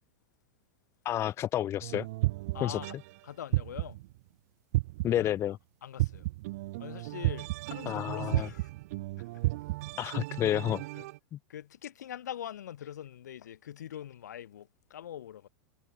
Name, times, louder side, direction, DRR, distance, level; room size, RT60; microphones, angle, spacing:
voice 1, 1.0-2.1 2.6-2.8 5.0-5.6 7.9-8.5 10.0-10.8 11.3-11.4, left 12 dB, 30° left, 0.6 m, -30 dB
sound 1, 1.8-3.1 3.5-4.1 4.7-5.3 6.0-11.2, right 20 dB, 60° right, 0.6 m, -33 dB
voice 2, 2.5-3.0 3.2-4.0 5.2-5.3 5.8-6.3 6.8-8.7 9.2-9.5 11.0-11.1 11.5-15.5, left 10 dB, 80° left, 5.2 m, -43 dB
hypercardioid pair, 115°, 9 cm